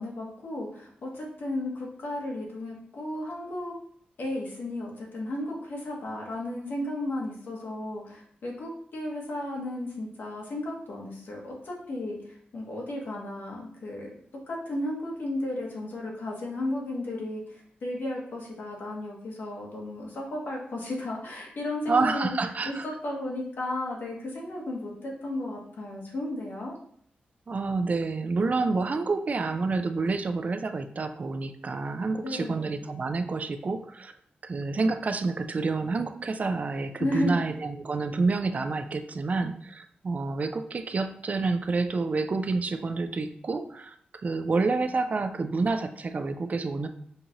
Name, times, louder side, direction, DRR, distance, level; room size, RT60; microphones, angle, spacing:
voice 1, 0.0-3.7 4.2-14.1 14.5-22.4 22.7-26.8 32.2-32.7 37.0-37.4, left 1 dB, 75° left, -2 dB, 1.2 m, -34 dB
voice 2, 21.9-22.8 27.5-34.1 34.4-44.0 44.2-46.9, right 3 dB, 45° right, 8 dB, 0.4 m, -28 dB
5.3 x 2.5 x 2.8 m, 0.63 s
cardioid pair, 60°, 3 cm